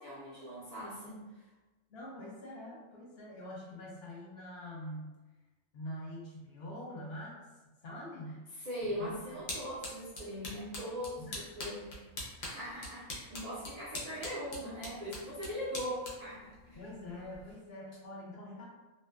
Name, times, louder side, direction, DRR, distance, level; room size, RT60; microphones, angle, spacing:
voice 1, 0.0-1.4 8.5-11.9 12.4-16.8, equal, 60° right, -8 dB, 0.4 m, -40 dB
voice 2, 1.9-5.2 5.7-7.4 7.8-8.4 9.0-9.2 11.2-11.5 16.8-18.6, left 1 dB, 60° left, -4 dB, 0.7 m, -45 dB
sound 1, 8.8-17.5, left 1 dB, 80° left, 1.1 m, -45 dB
2.6 x 2.1 x 2.2 m, 1.2 s
omnidirectional pair, 1.3 m